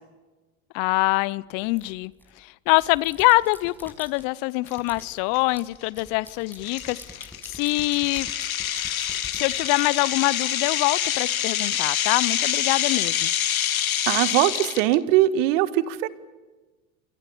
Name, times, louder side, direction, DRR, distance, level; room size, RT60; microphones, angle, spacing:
voice 1, 0.7-2.1 2.4-8.3 9.3-13.3, left 22 dB, 55° left, 21 dB, 0.9 m, -24 dB
sound 1, 1.8-2.3 2.7-4.3 4.7-10.4, left 1 dB, 5° left, 6.3 m, -46 dB
sound 2, 4.7-4.8 5.4-5.5 6.0-6.1 6.6-14.9, left 10 dB, 90° left, 0.9 m, -26 dB
voice 2, 14.1-16.1, right 14 dB, 65° right, 13 dB, 1.7 m, -21 dB
27.0 x 26.5 x 7.1 m, 1.2 s
hypercardioid pair, 80°, 41 cm